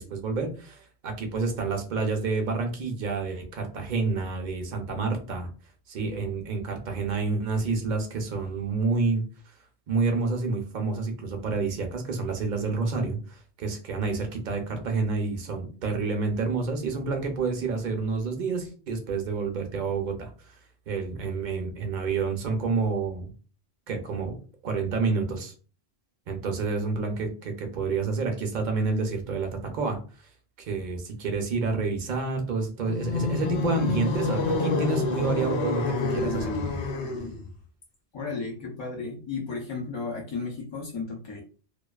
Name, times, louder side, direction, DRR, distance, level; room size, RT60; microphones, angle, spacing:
voice 1, 0.0-5.5 5.9-9.2 9.9-20.6 20.9-23.3 23.9-24.3 24.6-25.5 26.3-30.0 30.7-36.5, right 4 dB, 55° right, 4 dB, 0.6 m, -29 dB
sound 1, 32.8-37.5, left 3 dB, 90° left, 0.9 m, -28 dB
voice 2, 38.1-41.4, left 4 dB, 45° left, -3 dB, 0.4 m, -34 dB
2.4 x 2.2 x 2.2 m, 0.38 s
omnidirectional pair, 1.1 m